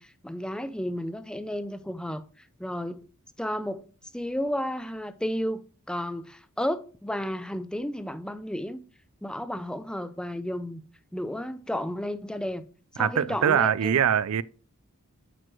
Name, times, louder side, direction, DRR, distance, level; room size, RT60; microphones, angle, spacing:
voice 1, 0.0-3.0 3.4-3.9 4.1-5.6 5.9-8.8 9.2-10.8 11.1-12.6 12.9-14.0, equal, 5° left, 0.4 m, -32 dB
voice 2, 13.0-14.4, right 8 dB, 70° right, 0.4 m, -23 dB
9.1 x 6.1 x 3.0 m
head